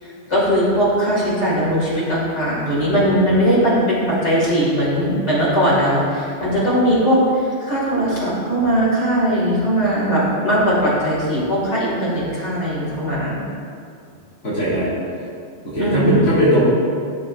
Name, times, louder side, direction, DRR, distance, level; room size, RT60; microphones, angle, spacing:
voice 1, 0.0-13.4 15.8-16.4, equal, 70° left, -8 dB, 2.7 m, -19 dB
voice 2, 2.9-3.3 14.4-14.9 15.6-16.6, equal, 90° left, -11 dB, 2.4 m, -19 dB
12.5 x 6.4 x 2.6 m, 2.3 s
omnidirectional pair, 1.2 m